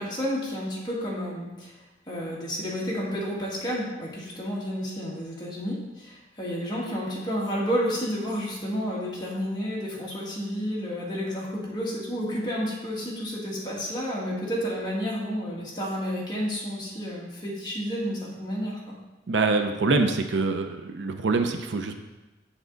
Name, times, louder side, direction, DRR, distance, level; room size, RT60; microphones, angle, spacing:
voice 1, 0.0-1.8 2.1-19.0, equal, 20° left, -5 dB, 2.0 m, -31 dB
voice 2, 19.3-21.9, right 3 dB, 70° right, 6 dB, 0.6 m, -25 dB
7.4 x 7.3 x 4.0 m, 1.1 s
head